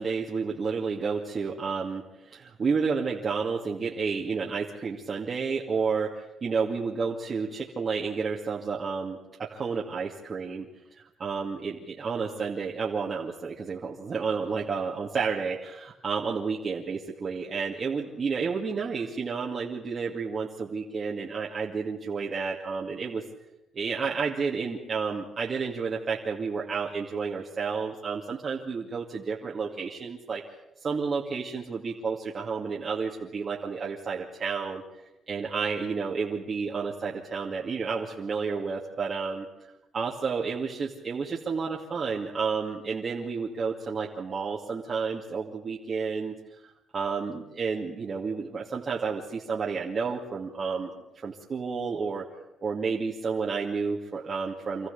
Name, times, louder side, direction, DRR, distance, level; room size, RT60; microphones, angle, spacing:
voice 1, 0.0-10.7 10.9-23.2 23.7-30.4 30.8-34.8 35.3-39.5 39.9-46.3 46.6-52.3 52.6-54.9, right 5 dB, 45° right, -2 dB, 2.3 m, -31 dB
26.0 x 14.5 x 8.4 m, 0.91 s
cardioid pair, 90°, 0 cm